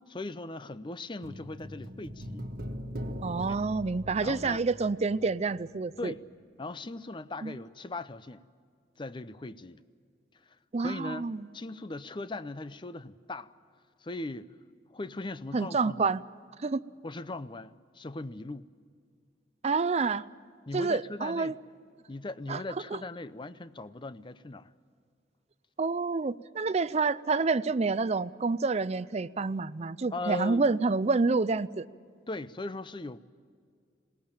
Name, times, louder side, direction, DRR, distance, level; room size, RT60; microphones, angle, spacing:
voice 1, 0.1-2.4 3.4-3.7 4.2-4.6 6.0-6.2 6.6-8.4 9.0-9.8 10.3-11.3 11.5-13.5 14.0-14.5 14.9-16.1 17.0-18.7 20.7-21.6 22.1-24.7 30.1-30.6 32.3-33.2, left 2 dB, 25° left, 0.6 m, -39 dB
sound 1, 1.2-5.7 5.9-6.0, equal, 55° right, 1.5 m, -41 dB
voice 2, 3.2-6.1 7.4-7.5 10.7-11.5 15.5-16.2 16.6-16.8 19.6-20.3 20.7-21.5 22.5-22.6 22.9-23.0 25.8-31.9, right 4 dB, 35° right, 0.5 m, -28 dB
21.5 x 18.5 x 8.8 m
head